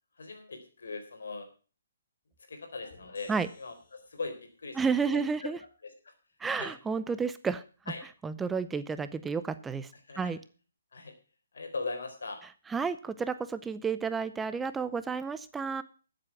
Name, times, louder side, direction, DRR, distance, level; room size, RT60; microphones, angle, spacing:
voice 1, 0.2-1.5 2.5-3.3 3.6-4.8 5.0-5.2 5.8-6.1 6.5-6.8 7.9-8.1 10.1-10.3 10.9-11.1 11.5-12.4, left 3 dB, 75° left, 6 dB, 4.0 m, -39 dB
sound 1, 2.8-4.5, left 4 dB, 60° left, 4.4 m, -57 dB
voice 2, 4.8-5.6 6.4-7.6 8.2-9.9 10.2-10.4 12.7-15.8, right 5 dB, 10° right, 13 dB, 0.6 m, -31 dB
13.5 x 7.8 x 5.8 m, 0.37 s
hypercardioid pair, 145°, 0 cm